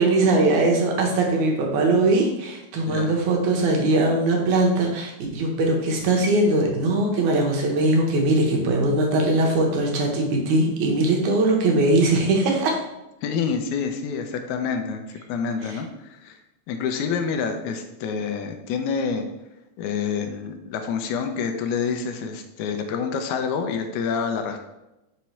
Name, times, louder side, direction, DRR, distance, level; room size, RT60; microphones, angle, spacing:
voice 1, 0.0-12.8 15.7-15.8, right 2 dB, 80° right, 1 dB, 2.5 m, -21 dB
voice 2, 2.8-3.2 13.2-16.4 16.7-19.3 19.8-24.6, left 6 dB, 90° left, 6 dB, 2.0 m, -27 dB
5.8 x 3.1 x 5.6 m, 0.94 s
omnidirectional pair, 3.4 m